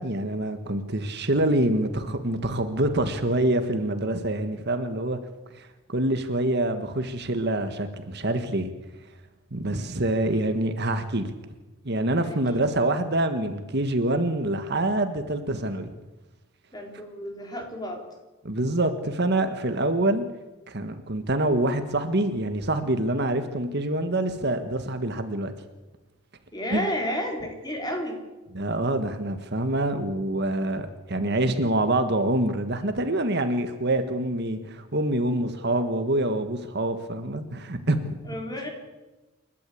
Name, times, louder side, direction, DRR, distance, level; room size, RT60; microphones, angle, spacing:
voice 1, 0.0-5.2 5.5-8.7 9.5-11.3 11.8-15.9 18.4-20.2 20.7-25.5 26.7-26.9 28.5-38.2, right 1 dB, 50° right, 8 dB, 1.6 m, -26 dB
voice 2, 12.2-12.6 16.7-18.0 26.5-28.2 38.3-38.7, equal, 20° left, 2 dB, 3.9 m, -32 dB
29.0 x 12.0 x 8.5 m, 1.1 s
head